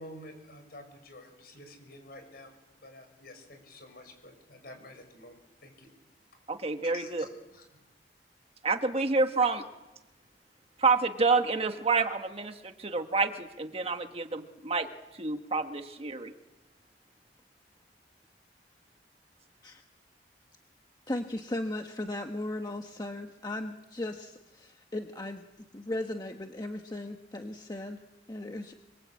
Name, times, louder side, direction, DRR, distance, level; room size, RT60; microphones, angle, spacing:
voice 1, 0.0-2.5 2.8-5.9 6.8-7.8, left 1 dB, 60° left, 6 dB, 6.8 m, -49 dB
voice 2, 6.5-7.2 8.6-9.6 10.8-14.9 15.2-16.3, right 4 dB, 35° right, 6 dB, 1.5 m, -28 dB
voice 3, 21.1-25.4 25.7-28.0 28.3-28.7, left 1 dB, 25° left, 4 dB, 1.2 m, -37 dB
28.0 x 23.5 x 8.6 m, 1.0 s
head